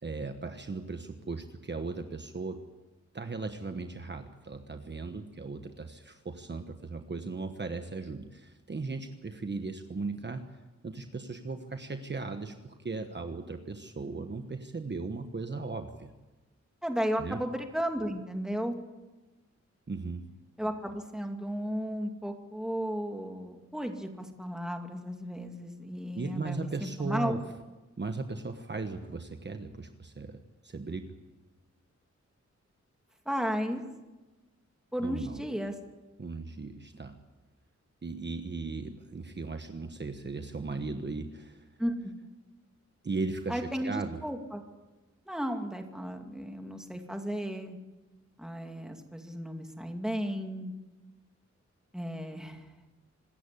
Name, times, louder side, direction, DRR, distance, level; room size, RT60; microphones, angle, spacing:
voice 1, 0.0-2.6 3.1-10.4 10.8-16.1 17.2-17.4 19.9-20.3 26.1-27.4 28.0-31.1 35.0-35.4 36.2-37.2 38.0-41.8 43.0-44.2, right 3 dB, 40° right, 7 dB, 1.2 m, -37 dB
voice 2, 16.8-18.8 20.6-27.4 33.3-33.8 34.9-35.7 41.8-42.1 43.5-44.6 45.3-47.8 48.4-50.7 51.9-52.7, equal, ahead, 4 dB, 2.5 m, -34 dB
26.0 x 13.5 x 8.5 m, 1.2 s
wide cardioid pair, 120°, 29 cm